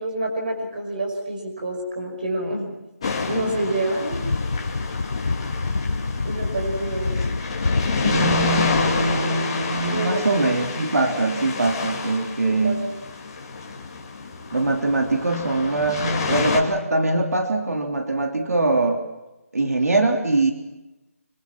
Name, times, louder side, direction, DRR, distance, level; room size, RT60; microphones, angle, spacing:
voice 1, 0.0-2.7 3.3-4.2 6.2-7.3 9.0-9.4 9.9-10.5 12.5-12.9, right 1 dB, 35° right, 2 dB, 5.6 m, -28 dB
sound 1, 3.0-16.6, left 4 dB, 20° left, 2.5 m, -28 dB
sound 2, 4.1-9.2, left 3 dB, 60° left, 1.0 m, -27 dB
voice 2, 8.0-12.8 14.5-19.0 19.5-20.5, right 2 dB, 90° right, 4 dB, 3.3 m, -22 dB
25.5 x 23.0 x 6.0 m, 1.0 s
figure-of-eight pair, 180°, 8 cm